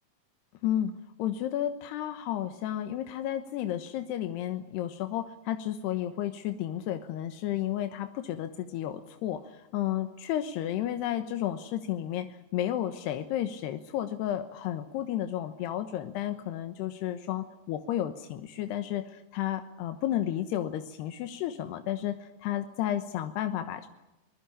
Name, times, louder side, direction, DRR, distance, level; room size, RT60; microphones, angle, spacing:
voice 1, 1.2-23.9, left 11 dB, 90° left, 8 dB, 3.2 m, -32 dB
24.5 x 21.0 x 9.9 m, 0.99 s
omnidirectional pair, 4.7 m